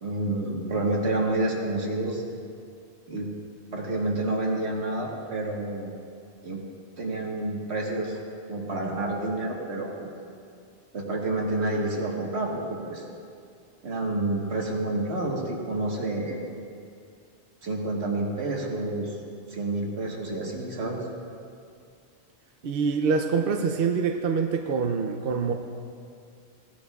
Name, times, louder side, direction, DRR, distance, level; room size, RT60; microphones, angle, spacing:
voice 1, 0.0-2.2 3.1-3.3 3.7-5.9 6.4-6.6 7.0-8.2 8.5-10.1 10.9-13.0 13.8-16.4 17.6-19.2 19.5-21.0, right 2 dB, 80° right, -1 dB, 1.7 m, -29 dB
voice 2, 22.6-25.5, right 5 dB, 60° right, 4 dB, 0.8 m, -25 dB
16.5 x 11.5 x 2.3 m, 2.4 s
omnidirectional pair, 1.1 m